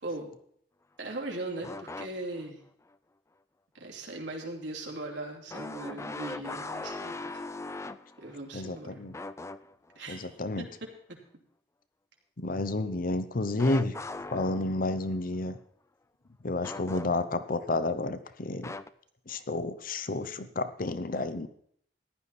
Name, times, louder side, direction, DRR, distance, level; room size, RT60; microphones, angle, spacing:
voice 1, 1.0-2.6 3.7-7.4 8.2-9.0 9.9-10.3 10.6-10.7, right 2 dB, 85° right, 0 dB, 3.0 m, -39 dB
sound 1, 1.6-2.5 2.9-3.0 5.5-8.7 9.1-10.0 13.6-15.1 16.6-17.5 18.6-18.9, left 2 dB, 15° left, 0.4 m, -40 dB
voice 2, 8.5-9.1 10.1-10.7 12.4-14.0 14.3-15.6 16.4-18.7 19.3-21.5, left 2 dB, 50° left, 11 dB, 0.8 m, -30 dB
15.0 x 11.0 x 4.2 m, 0.66 s
head